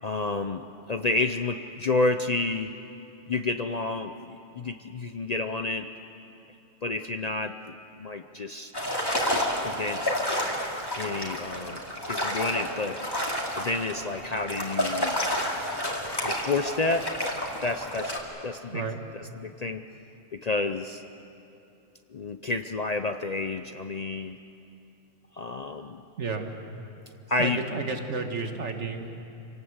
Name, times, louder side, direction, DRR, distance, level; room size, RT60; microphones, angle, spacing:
voice 1, 0.0-2.7 3.3-5.9 6.8-7.6 8.0-8.7 9.6-10.2 11.0-11.8 12.0-13.0 13.6-15.2 16.2-17.1 17.6-18.1 18.4-18.8 19.1-19.8 20.3-21.0 22.1-24.4 25.4-26.0 27.3-27.6, left 3 dB, 45° left, 8 dB, 0.6 m, -30 dB
sound 1, 8.7-18.2, left 1 dB, 20° left, 2.5 m, -30 dB
voice 2, 26.2-26.5 27.4-29.2, right 4 dB, 70° right, 5 dB, 1.9 m, -31 dB
26.5 x 18.5 x 7.9 m, 2.8 s
omnidirectional pair, 1.3 m